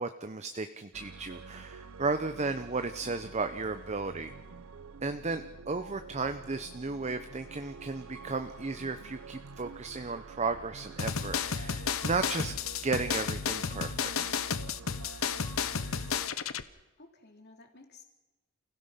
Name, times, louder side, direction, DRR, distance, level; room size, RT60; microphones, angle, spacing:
voice 1, 0.0-4.3 5.0-12.5 12.8-14.3, right 3 dB, 35° right, 8 dB, 0.8 m, -34 dB
sound 1, 0.9-16.3, right 4 dB, 85° right, 0.7 m, -48 dB
sound 2, 11.0-16.6, left 6 dB, 85° left, 0.9 m, -32 dB
voice 2, 15.6-16.7 17.0-18.0, left 3 dB, 50° left, 3 dB, 3.2 m, -56 dB
29.0 x 16.5 x 5.8 m, 1.1 s
head